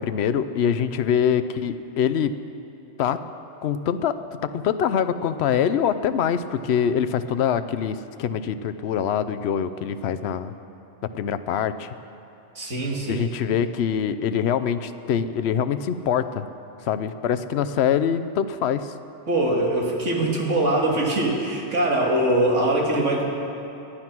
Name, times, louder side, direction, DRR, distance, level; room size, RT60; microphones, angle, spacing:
voice 1, 0.0-2.3 3.0-3.2 3.6-4.1 4.4-10.5 11.0-11.9 13.1-16.5 16.8-18.9, left 8 dB, 65° left, 12 dB, 0.9 m, -24 dB
voice 2, 12.6-13.3 19.3-23.2, right 1 dB, 90° right, -1 dB, 2.4 m, -22 dB
18.5 x 11.5 x 6.0 m, 2.8 s
omnidirectional pair, 1.2 m